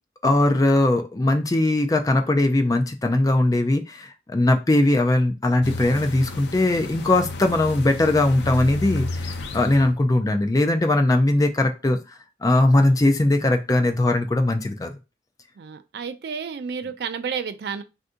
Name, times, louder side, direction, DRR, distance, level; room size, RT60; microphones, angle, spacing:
voice 1, 0.2-12.0 12.4-14.9, left 2 dB, 20° left, 0.4 m, -20 dB
sound 1, 5.6-9.9, left 2 dB, 75° left, 0.5 m, -32 dB
voice 2, 12.7-13.0 15.6-17.8, right 6 dB, 60° right, 0.4 m, -32 dB
2.6 x 2.6 x 3.6 m
head